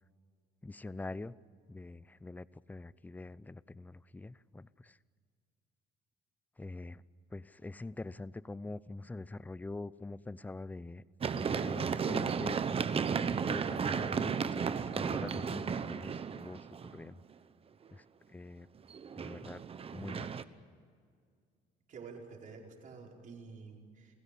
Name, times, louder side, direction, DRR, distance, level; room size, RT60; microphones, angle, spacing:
voice 1, 0.6-1.3 1.7-5.0 6.6-7.0 7.3-11.0 11.3-12.6 13.1-17.2 17.9-18.0 18.3-18.7 19.1-19.6 19.9-20.4, left 2 dB, 10° left, 18 dB, 0.6 m, -44 dB
Run, 11.2-17.1 18.9-20.4, right 6 dB, 35° right, 1.0 m, -34 dB
voice 2, 21.9-24.1, right 5 dB, 50° right, 1 dB, 4.9 m, -49 dB
29.5 x 16.5 x 8.5 m, 2.1 s
cardioid pair, 110°, 17 cm